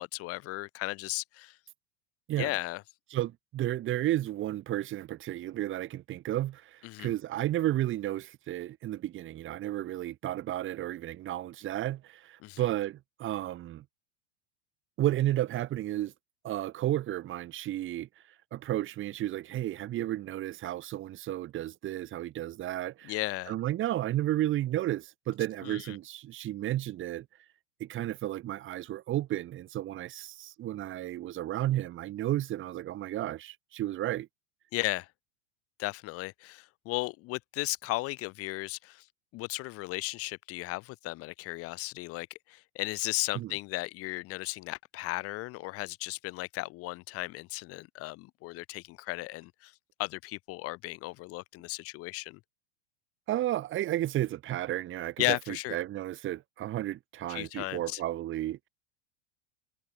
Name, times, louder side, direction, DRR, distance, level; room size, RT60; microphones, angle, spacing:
voice 1, 0.0-1.6 2.4-2.8 6.8-7.1 12.4-12.6 23.0-23.5 25.6-26.0 34.7-35.1 35.8-39.1 39.3-49.7 50.0-52.4 55.2-55.8 57.3-58.0, left 21 dB, 40° left, 3.0 m, -35 dB
voice 2, 3.1-13.8 15.0-16.1 16.4-18.1 18.5-23.1 23.5-27.3 27.8-34.3 43.3-43.6 53.3-58.7, right 14 dB, 35° right, 4.4 m, -32 dB
figure-of-eight pair, 85°, 35 cm